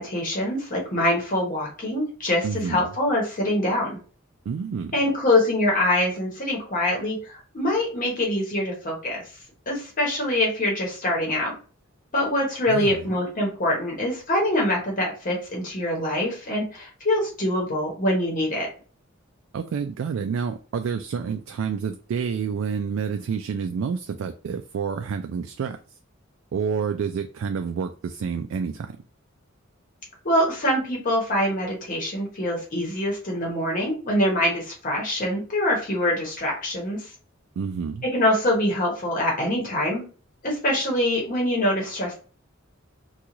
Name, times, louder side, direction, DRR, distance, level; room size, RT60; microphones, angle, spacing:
voice 1, 0.0-4.0 4.9-9.2 9.7-11.5 12.1-18.7 30.2-37.1 38.1-40.0 40.4-42.1, left 1 dB, 45° left, 1.0 m, -24 dB
voice 2, 2.4-2.9 4.5-5.0 12.7-13.0 19.5-25.8 26.5-29.0 37.6-38.0, right 6 dB, 80° right, 0.3 m, -29 dB
3.0 x 2.3 x 3.7 m
head